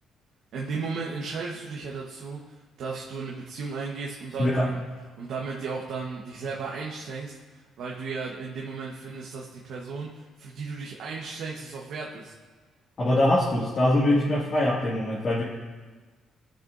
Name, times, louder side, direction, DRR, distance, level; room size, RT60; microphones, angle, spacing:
voice 1, 0.5-4.8 5.2-12.3, right 4 dB, 70° right, -3 dB, 1.1 m, -35 dB
voice 2, 13.0-15.4, left 1 dB, 45° left, -8 dB, 2.1 m, -23 dB
18.0 x 6.6 x 2.6 m, 1.4 s
cardioid pair, 90°, 0 cm